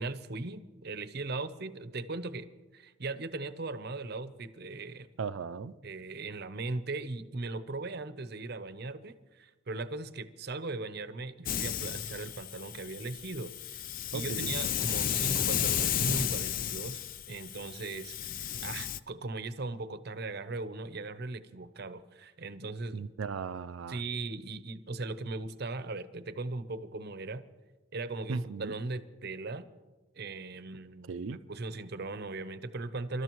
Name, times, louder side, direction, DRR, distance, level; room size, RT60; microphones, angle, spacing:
voice 1, 0.0-2.5 2.7-5.1 5.8-13.8 14.1-23.0 23.9-27.4 27.9-29.7 30.2-33.2, right 3 dB, 55° right, 12 dB, 0.7 m, -38 dB
voice 2, 5.2-5.7 14.1-14.5 22.9-24.0 28.3-28.8 31.1-31.4, right 5 dB, 80° right, 13 dB, 0.5 m, -37 dB
Hiss, 11.5-19.0, left 9 dB, 45° left, 0.4 m, -33 dB
26.5 x 12.5 x 3.1 m, 1.2 s
head